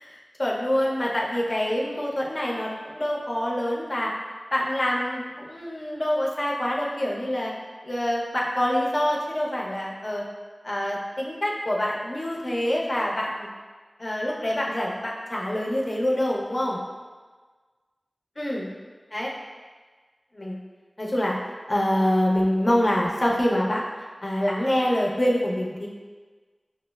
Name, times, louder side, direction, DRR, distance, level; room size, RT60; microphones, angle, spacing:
voice 1, 0.4-4.1 4.5-7.5 7.8-10.2 10.6-13.5 14.0-16.8 18.4-18.8 19.1-19.3 20.3-20.6 21.0-21.4 21.7-23.8 24.2-25.9, left 1 dB, 45° left, -3 dB, 0.6 m, -25 dB
5.9 x 2.0 x 2.3 m, 1.4 s
wide cardioid pair, 50°, 0 cm